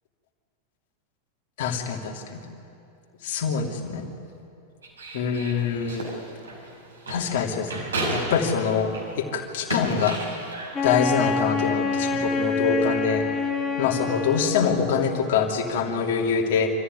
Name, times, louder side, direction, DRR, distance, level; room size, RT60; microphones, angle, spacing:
voice 1, 1.6-2.4 3.2-4.1 5.1-6.1 7.1-8.9 9.3-10.2 10.8-13.2 13.8-16.7, left 6 dB, 50° left, 1 dB, 3.0 m, -25 dB
sound 1, 4.8-9.2 9.5-10.8, right 1 dB, 70° right, 5.3 m, -32 dB
Wind instrument woodwind instrument, 10.7-15.1, left 4 dB, 20° left, 2.1 m, -26 dB
26.0 x 14.5 x 9.8 m, 2.7 s
figure-of-eight pair, 90°, 0 cm